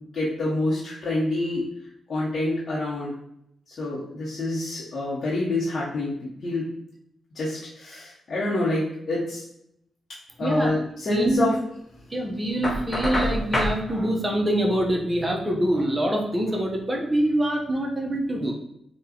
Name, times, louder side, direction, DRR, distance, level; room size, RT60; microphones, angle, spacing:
voice 1, 0.1-1.6 2.1-3.1 3.7-6.7 7.3-9.4 10.4-11.5, left 1 dB, 60° left, -7 dB, 0.8 m, -27 dB
voice 2, 10.4-10.7 11.1-11.4 12.1-18.5, right 1 dB, 20° right, 0 dB, 0.8 m, -25 dB
Knock, 12.6-13.8, equal, 25° left, 1.2 m, -25 dB
3.8 x 2.3 x 2.9 m, 0.76 s
hypercardioid pair, 40°, 0 cm